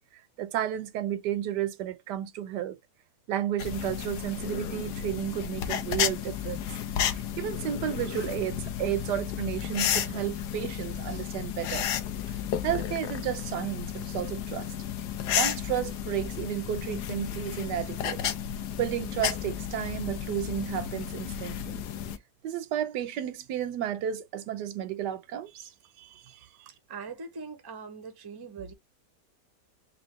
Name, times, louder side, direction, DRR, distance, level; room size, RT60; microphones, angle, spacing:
voice 1, 0.4-2.8 3.3-6.7 7.1-11.9 12.3-14.7 15.3-18.2 18.8-21.8 22.4-25.7 26.0-26.7, right 11 dB, 90° right, 1.3 m, -32 dB
sound 1, 3.6-22.2, left 9 dB, 90° left, 1.3 m, -33 dB
voice 2, 26.9-28.7, right 4 dB, 25° right, 0.5 m, -41 dB
4.3 x 2.7 x 3.0 m
omnidirectional pair, 1.8 m